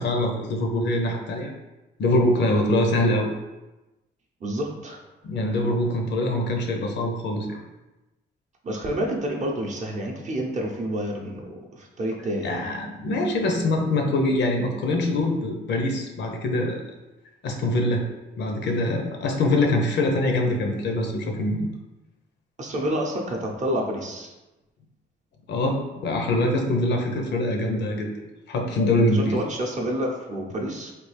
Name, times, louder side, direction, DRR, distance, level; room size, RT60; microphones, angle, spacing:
voice 1, 0.0-1.5 2.0-3.3 5.2-7.6 12.4-16.8 17.4-18.0 18.4-21.7 25.5-28.1 28.5-29.4, left 1 dB, 60° left, 2 dB, 0.6 m, -24 dB
voice 2, 4.4-5.0 8.6-12.6 22.6-24.3 29.0-30.9, equal, 40° right, 0 dB, 0.7 m, -29 dB
3.3 x 2.3 x 3.3 m, 1.0 s
cardioid pair, 90°, 20 cm